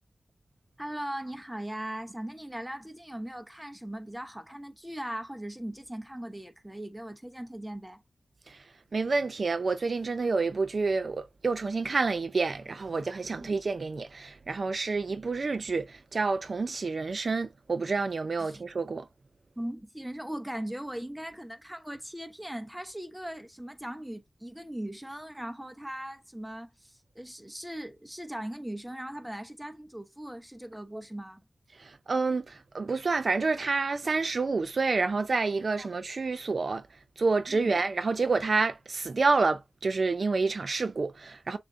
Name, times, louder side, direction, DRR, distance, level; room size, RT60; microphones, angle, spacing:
voice 1, 0.8-8.0 13.3-13.5 18.4-18.6 19.6-31.4 35.8-35.9 37.5-37.7, right 1 dB, 5° right, 0.9 m, -39 dB
voice 2, 8.9-19.1 31.8-36.9 37.2-41.6, right 4 dB, 65° right, 0.5 m, -28 dB
6.7 x 2.6 x 2.6 m
wide cardioid pair, 80°, 0 cm